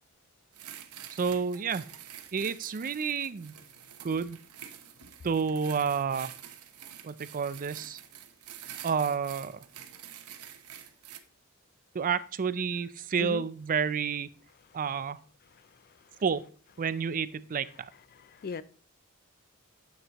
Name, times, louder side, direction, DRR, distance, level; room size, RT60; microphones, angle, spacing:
sound 1, 0.5-11.2, right 10 dB, 80° right, 0.9 m, -47 dB
voice 1, 1.1-1.8 2.3-3.5 4.0-4.4 5.2-6.3 7.0-8.0 8.8-9.6 11.9-14.3 14.7-15.2 16.2-16.4 16.8-17.9, right 6 dB, 40° right, 15 dB, 0.4 m, -30 dB
voice 2, 15.5-16.2 18.1-18.6, left 4 dB, 45° left, 16 dB, 0.4 m, -40 dB
9.4 x 8.2 x 3.0 m, 0.41 s
head